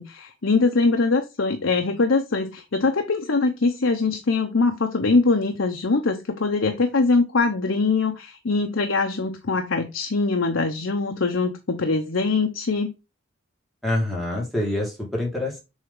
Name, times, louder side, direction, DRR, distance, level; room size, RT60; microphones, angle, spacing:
voice 1, 0.0-12.9, left 3 dB, 75° left, 0.8 m, -22 dB
voice 2, 13.8-15.6, left 1 dB, ahead, 2.3 m, -26 dB
7.3 x 3.6 x 3.7 m
head